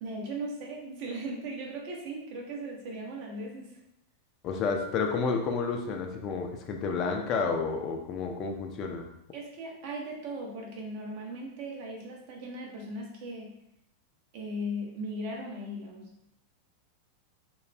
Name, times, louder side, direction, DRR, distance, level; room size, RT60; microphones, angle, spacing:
voice 1, 0.0-3.8 9.3-13.5 14.3-16.1, right 1 dB, 50° right, -1 dB, 0.6 m, -38 dB
voice 2, 4.4-9.1, left 5 dB, 35° left, 3 dB, 0.4 m, -30 dB
2.3 x 2.2 x 3.1 m, 0.81 s
figure-of-eight pair, 90°, 0 cm